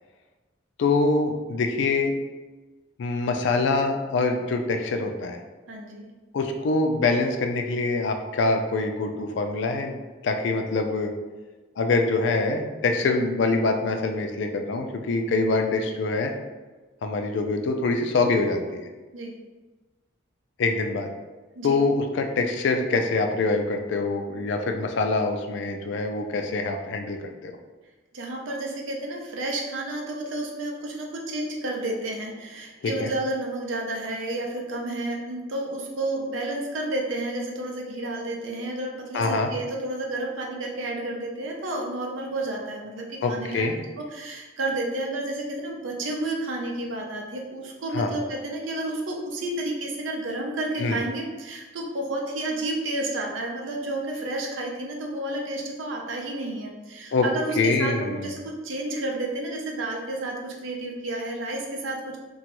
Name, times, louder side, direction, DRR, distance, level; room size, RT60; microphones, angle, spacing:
voice 1, 0.8-2.1 3.0-5.4 6.3-10.0 10.2-11.1 11.8-16.3 17.0-18.8 20.6-21.1 21.6-27.5 32.8-33.1 39.1-39.5 43.2-43.8 47.9-48.1 50.8-51.0 57.1-57.3 57.6-58.3, left 3 dB, 65° left, 5 dB, 0.3 m, -24 dB
voice 2, 5.7-6.1 19.1-19.3 21.6-21.8 28.1-43.7 44.0-62.2, right 2 dB, 85° right, 0 dB, 0.6 m, -31 dB
2.9 x 2.3 x 2.9 m, 1.2 s
head